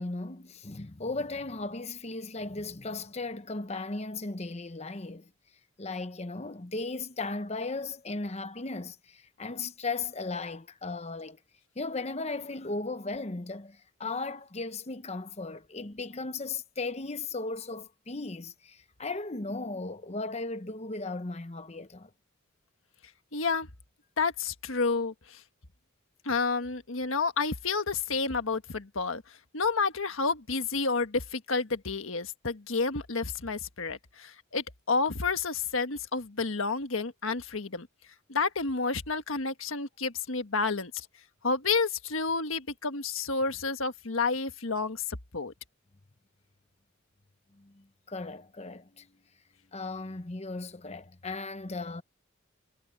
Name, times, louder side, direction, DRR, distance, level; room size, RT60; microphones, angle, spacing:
voice 1, 0.0-5.3 5.8-11.4 11.8-22.1 47.5-49.1 49.7-52.0, left 3 dB, 30° left, 0.9 m, -36 dB
voice 2, 23.3-23.7 24.2-25.4 26.2-37.9 38.3-41.1 41.4-45.5, left 4 dB, 80° left, 1.5 m, -30 dB
head